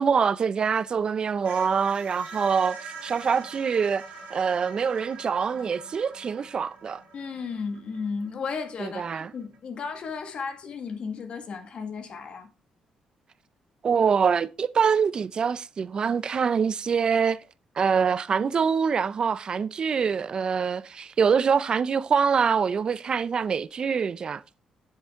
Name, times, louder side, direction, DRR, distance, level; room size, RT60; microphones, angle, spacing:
voice 1, 0.0-4.0 4.3-7.0 8.8-9.3 13.8-17.4 17.8-24.4, right 6 dB, 40° right, 0.4 m, -25 dB
sound 1, 0.7-9.6, right 4 dB, 85° right, 2.7 m, -44 dB
voice 2, 7.1-12.5, left 5 dB, 55° left, 1.6 m, -34 dB
7.7 x 7.2 x 3.5 m
cardioid pair, 125°, 2 cm